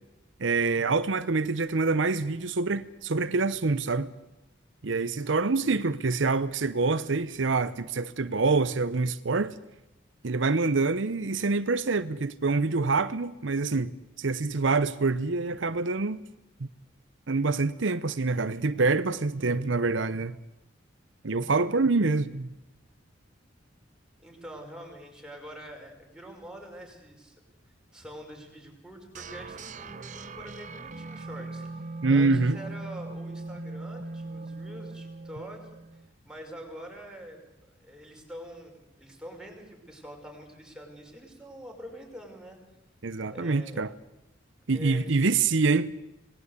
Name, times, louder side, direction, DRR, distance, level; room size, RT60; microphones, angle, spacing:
voice 1, 0.4-4.1 4.8-9.5 10.2-13.9 14.2-16.2 16.6-16.7 17.3-20.4 21.2-22.5 32.0-32.6 43.0-43.9 44.7-45.9, right 3 dB, 70° right, 0.8 m, -26 dB
voice 2, 24.2-27.3 27.6-42.6 43.3-43.8 44.7-45.2, equal, 5° right, 5.7 m, -45 dB
sound 1, 29.1-36.1, right 3 dB, 40° right, 1.0 m, -40 dB
27.0 x 19.0 x 8.3 m
head